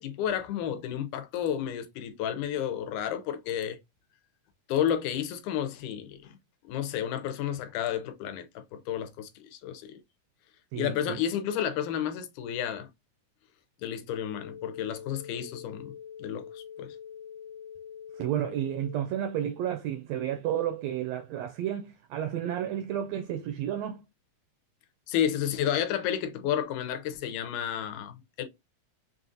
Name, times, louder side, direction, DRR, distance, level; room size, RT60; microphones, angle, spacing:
voice 1, 0.0-3.8 4.7-6.4 6.7-8.5 8.7-10.0 10.7-12.9 13.8-15.9 16.2-17.0 25.1-28.4, left 9 dB, 85° left, 2.1 m, -31 dB
voice 2, 10.7-11.2 18.2-24.0, right 10 dB, 80° right, 1.5 m, -31 dB
sound 1, 14.1-19.1, left 8 dB, 70° left, 1.5 m, -45 dB
5.4 x 2.5 x 2.5 m
omnidirectional pair, 3.4 m